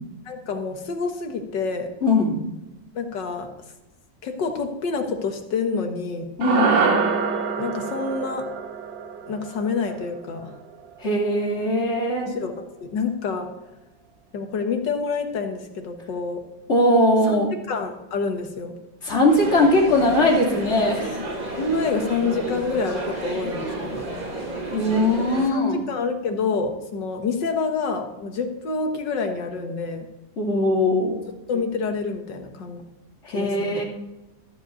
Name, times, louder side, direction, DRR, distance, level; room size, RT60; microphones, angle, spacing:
voice 1, 0.3-1.9 2.9-3.5 4.2-6.3 7.6-8.5 9.3-10.5 12.3-13.5 14.3-16.4 17.3-17.4 17.7-18.7 21.6-24.1 25.5-30.1 31.5-32.8 33.3-33.8, left 4 dB, 70° left, 5 dB, 2.0 m, -27 dB
voice 2, 2.0-2.4 6.4-6.8 11.0-12.3 16.7-17.5 19.0-21.2 24.7-25.8 30.4-31.2 33.2-33.8, left 1 dB, 35° left, -1 dB, 2.8 m, -20 dB
sound 1, 6.4-10.9, right 5 dB, 75° right, 1.7 m, -25 dB
sound 2, 19.3-25.5, right 2 dB, 50° right, 3.5 m, -31 dB
13.5 x 5.1 x 8.0 m, 0.97 s
omnidirectional pair, 2.0 m